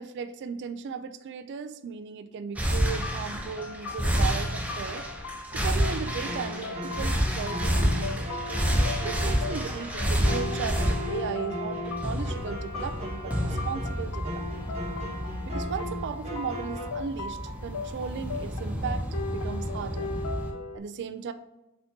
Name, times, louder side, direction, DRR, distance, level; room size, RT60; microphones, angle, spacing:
voice 1, 0.0-5.0 5.5-8.3 9.0-14.6 15.5-19.1 19.3-20.1 20.7-21.3, right 6 dB, 55° right, 10 dB, 0.3 m, -36 dB
sound 1, 2.6-20.5, equal, 5° right, 0.6 m, -30 dB
sound 2, 3.0-20.8, left 3 dB, 70° left, 0.4 m, -39 dB
sound 3, 5.8-16.9, left 1 dB, 30° right, 1.0 m, -38 dB
4.3 x 4.1 x 2.7 m, 0.97 s
head